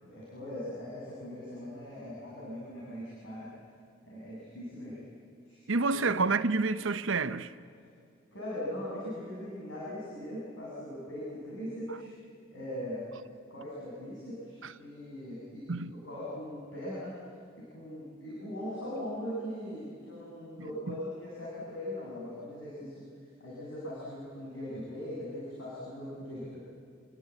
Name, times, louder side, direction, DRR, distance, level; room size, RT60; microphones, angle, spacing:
voice 1, 0.0-3.5 4.0-5.0 5.4-5.6 5.9-6.2 8.3-12.1 12.5-13.1 13.5-17.3 17.6-23.1 23.4-26.6, left 1 dB, 80° left, 8.0 m, -40 dB
voice 2, 5.7-7.5 14.6-14.7 15.7-15.9 20.9-21.0, right 3 dB, 85° right, 0.9 m, -28 dB
28.0 x 20.0 x 8.7 m
head